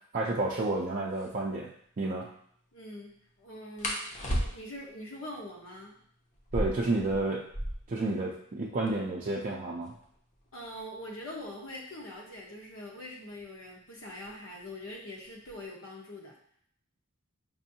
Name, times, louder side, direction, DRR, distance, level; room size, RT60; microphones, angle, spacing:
voice 1, 0.1-2.3 6.5-7.4 7.9-9.9, right 2 dB, 40° right, -4 dB, 0.4 m, -31 dB
sound 1, 1.1-1.3 3.8-4.9 6.3-8.0 8.3-8.4 8.6-9.2 9.8-12.4 13.4-13.7 14.1-14.6 14.9-15.6, equal, 35° left, 0.7 m, -36 dB
voice 2, 2.7-3.1 3.4-4.0 4.3-6.0 10.5-16.3, left 1 dB, 75° left, -2 dB, 1.1 m, -43 dB
5.3 x 2.6 x 2.8 m, 0.65 s
head